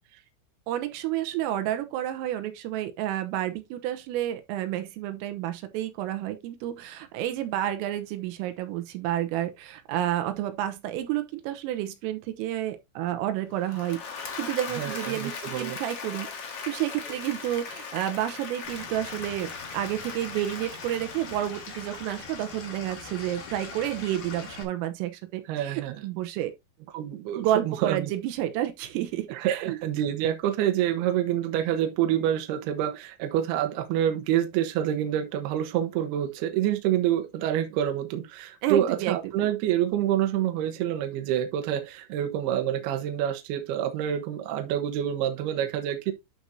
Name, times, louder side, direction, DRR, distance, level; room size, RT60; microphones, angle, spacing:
voice 1, 0.7-14.0 14.4-16.3 16.7-26.5 27.4-29.8 38.6-39.5, right 13 dB, 85° right, 3.6 m, -30 dB
Applause / Crowd, 13.5-22.7, left 5 dB, 70° left, 1.4 m, -39 dB
voice 2, 14.8-15.8 25.5-26.0 26.9-28.1 29.3-46.1, right 11 dB, 70° right, 2.7 m, -27 dB
Stream / Liquid, 18.6-24.6, left 4 dB, 45° left, 3.4 m, -42 dB
11.5 x 5.9 x 2.7 m
omnidirectional pair, 5.8 m